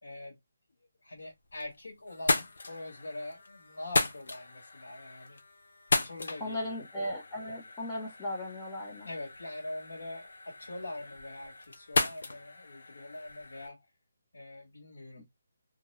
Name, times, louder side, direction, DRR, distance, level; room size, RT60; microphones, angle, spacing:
voice 1, 0.0-0.4 1.0-5.4 5.9-6.8 9.0-13.9 14.3-15.3, left 2 dB, 85° left, 1.0 m, -43 dB
sound 1, 1.2-1.8 2.1-13.7, left 3 dB, 65° left, 0.6 m, -35 dB
voice 2, 6.4-9.1, left 1 dB, 10° left, 0.4 m, -37 dB
2.3 x 2.0 x 2.9 m
hypercardioid pair, 175°, 0 cm